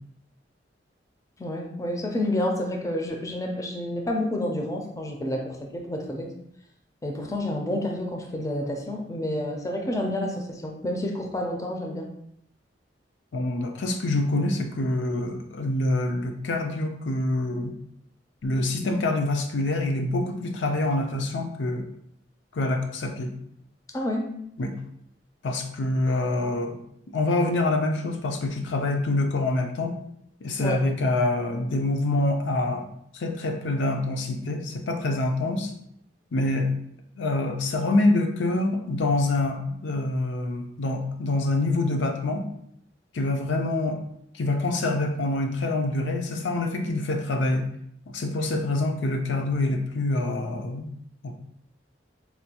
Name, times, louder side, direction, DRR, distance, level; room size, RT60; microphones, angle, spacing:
voice 1, 1.4-6.3 7.0-12.1 23.9-24.4 30.6-30.8, left 1 dB, 20° left, 2 dB, 0.4 m, -29 dB
voice 2, 13.3-17.7 18.4-21.8 22.5-23.3 24.6-24.7 25.4-26.8 27.1-30.0 30.4-32.9 33.1-35.7 36.3-36.8 37.2-42.4 43.1-44.0 44.4-47.7 48.1-50.9 51.2-51.4, left 2 dB, 85° left, 4 dB, 0.5 m, -26 dB
4.3 x 2.2 x 2.8 m, 0.73 s
head